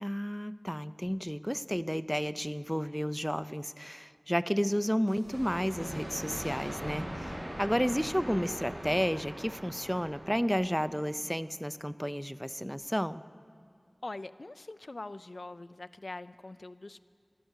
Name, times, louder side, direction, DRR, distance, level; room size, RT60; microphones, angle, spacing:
voice 1, 0.0-13.2, equal, ahead, 13 dB, 0.4 m, -32 dB
sound 1, 5.1-10.8, equal, 50° right, 2.1 m, -56 dB
sound 2, 5.2-11.0, equal, 80° right, 2.7 m, -41 dB
voice 2, 14.0-17.1, left 2 dB, 70° left, 13 dB, 0.4 m, -43 dB
16.0 x 11.0 x 8.1 m, 2.2 s
wide cardioid pair, 40°, 0 cm